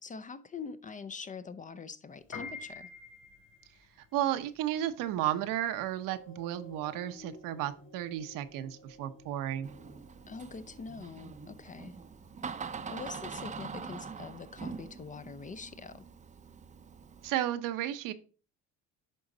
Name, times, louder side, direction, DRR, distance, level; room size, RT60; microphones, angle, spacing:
voice 1, 0.0-2.9 10.3-12.0 12.9-16.0, left 5 dB, 25° left, 0.5 m, -44 dB
Piano, 2.2-12.6, left 4 dB, 50° left, 3.4 m, -49 dB
voice 2, 4.1-9.7 17.2-18.1, right 12 dB, 70° right, 0.8 m, -33 dB
sound 1, 5.2-11.9 12.5-12.6, left 1 dB, 70° left, 2.5 m, -55 dB
Door, 9.6-17.3, right 5 dB, 20° right, 0.6 m, -44 dB
11.0 x 3.9 x 3.8 m
supercardioid pair, 100°, 33 cm